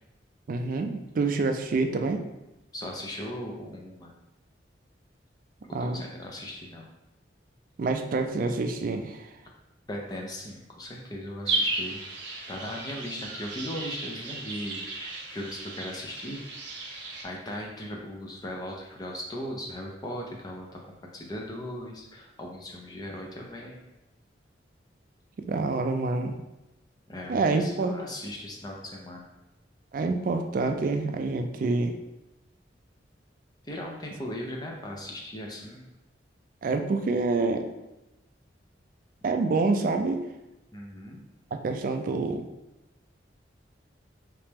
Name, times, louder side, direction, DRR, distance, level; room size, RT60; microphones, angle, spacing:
voice 1, 0.5-2.2 5.7-6.0 7.8-9.3 25.4-26.3 27.3-28.0 29.9-32.0 36.6-37.7 39.2-40.2 41.5-42.4, right 3 dB, 45° right, 6 dB, 0.3 m, -27 dB
voice 2, 2.7-4.2 5.7-6.9 9.4-9.5 9.9-12.0 12.5-16.4 17.2-20.8 21.1-23.8 27.1-29.3 33.6-36.0 40.7-41.2, left 1 dB, 20° left, 0 dB, 0.5 m, -38 dB
sound 1, 11.5-17.2, right 2 dB, 70° right, 0.7 m, -34 dB
3.2 x 3.0 x 3.4 m, 0.96 s
head